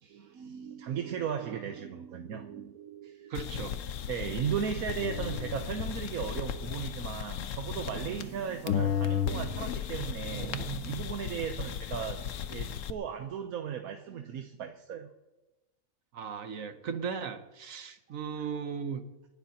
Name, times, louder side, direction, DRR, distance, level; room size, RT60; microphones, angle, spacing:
voice 1, 0.0-3.3 4.1-15.1, right 8 dB, 90° right, 1.3 m, -36 dB
sound 1, 3.3-8.4 8.7-12.9, left 9 dB, 70° left, 1.0 m, -34 dB
voice 2, 3.3-3.8 16.1-19.0, right 6 dB, 70° right, 1.3 m, -37 dB
28.5 x 11.5 x 2.8 m
omnidirectional pair, 1.5 m